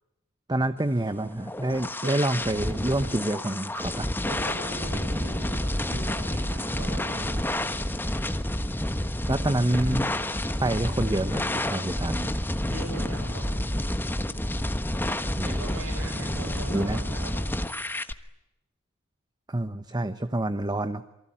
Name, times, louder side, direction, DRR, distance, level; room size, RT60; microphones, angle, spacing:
voice 1, 0.5-4.1 9.3-10.2 10.6-12.3 15.3-15.8 16.7-17.0 19.5-21.0, right 1 dB, 20° right, 11 dB, 1.0 m, -27 dB
sound 1, 1.2-18.1, left 1 dB, 10° left, 1.3 m, -29 dB
voice 2, 4.2-7.4 12.7-13.7 15.4-17.3, right 2 dB, 65° right, -1 dB, 7.9 m, -39 dB
28.5 x 23.5 x 8.9 m, 0.89 s
head